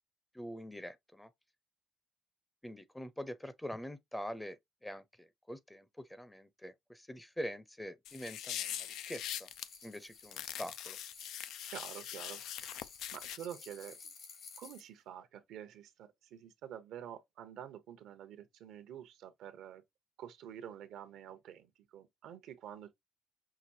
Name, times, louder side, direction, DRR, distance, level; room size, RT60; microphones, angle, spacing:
voice 1, 0.3-1.3 2.6-9.5 9.8-11.0, equal, 10° left, 0.6 m, -44 dB
sound 1, 8.1-9.7 10.3-13.4, left 11 dB, 85° left, 0.3 m, -42 dB
sound 2, 8.1-14.9, left 5 dB, 70° left, 2.3 m, -54 dB
voice 2, 11.7-12.8 13.1-14.1 14.6-19.8 20.2-22.9, right 10 dB, 85° right, 0.8 m, -48 dB
5.8 x 2.5 x 2.7 m
cardioid pair, 90°, 0 cm